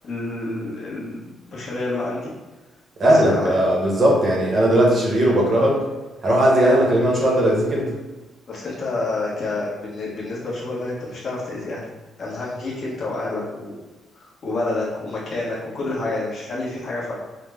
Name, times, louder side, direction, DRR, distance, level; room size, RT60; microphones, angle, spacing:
voice 1, 0.0-2.3 3.0-3.5 8.5-11.8 12.2-13.8 14.2-17.2, left 2 dB, 45° left, -6 dB, 1.1 m, -28 dB
voice 2, 3.0-5.8 6.2-7.9, right 1 dB, 30° right, -2 dB, 0.9 m, -18 dB
5.4 x 2.1 x 3.5 m, 1.2 s
cardioid pair, 175°, 0 cm